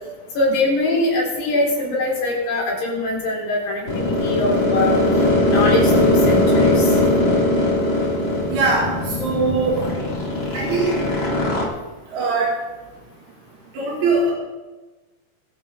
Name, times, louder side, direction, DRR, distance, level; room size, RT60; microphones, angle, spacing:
voice 1, 0.4-5.0 5.5-7.2, left 2 dB, 85° left, -4 dB, 6.0 m, -23 dB
sound 1, 3.9-11.7, left 1 dB, 55° left, 0.6 m, -19 dB
voice 2, 8.5-8.9 9.2-9.8 10.5-11.0 12.1-12.5 13.7-14.3, right 3 dB, 80° right, -4 dB, 4.3 m, -20 dB
24.0 x 8.3 x 3.6 m, 1.2 s
omnidirectional pair, 4.7 m